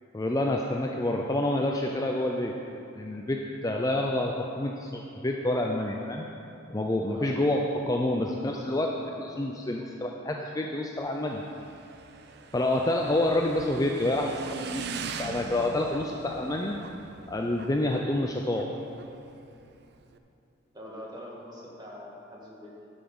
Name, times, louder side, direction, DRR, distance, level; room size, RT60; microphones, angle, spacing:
voice 1, 0.1-2.5 2.9-6.3 6.7-11.4 12.5-16.8 17.3-18.7, left 1 dB, 15° left, 1 dB, 0.4 m, -28 dB
Motorcycle / Engine, 11.0-20.2, right 5 dB, 50° right, 0.5 m, -42 dB
voice 2, 20.7-22.8, equal, 20° right, -4 dB, 1.7 m, -44 dB
11.0 x 6.8 x 5.4 m, 2.8 s
head